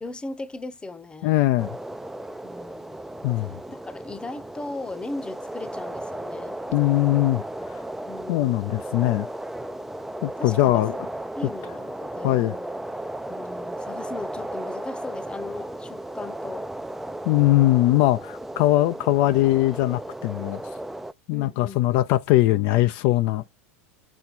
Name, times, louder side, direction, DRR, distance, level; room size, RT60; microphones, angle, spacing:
voice 1, 0.0-1.3 2.4-3.0 3.4-6.6 8.1-8.6 10.4-10.9 11.4-12.7 13.3-16.7 21.3-22.1, left 2 dB, 15° left, 0.9 m, -37 dB
voice 2, 1.2-1.7 3.2-3.5 6.7-7.4 8.3-9.3 10.2-11.0 12.2-12.5 17.3-20.6 21.3-23.6, left 16 dB, 55° left, 0.6 m, -21 dB
sound 1, 1.6-21.1, right 1 dB, 5° right, 0.5 m, -35 dB
6.4 x 4.2 x 4.3 m
hypercardioid pair, 95°, 7 cm